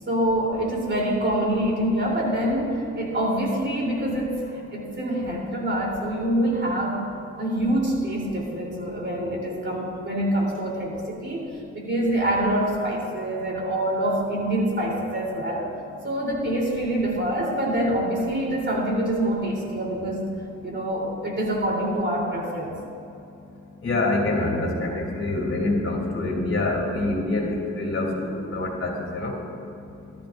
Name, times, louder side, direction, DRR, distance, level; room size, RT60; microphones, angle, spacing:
voice 1, 0.1-7.1 7.4-15.7 16.0-20.3 20.6-22.7, right 1 dB, 35° right, -2 dB, 3.5 m, -25 dB
voice 2, 23.8-27.5 27.8-29.3, left 2 dB, 45° left, -2 dB, 3.2 m, -25 dB
19.5 x 13.0 x 2.6 m, 2.7 s
cardioid pair, 90°, 30 cm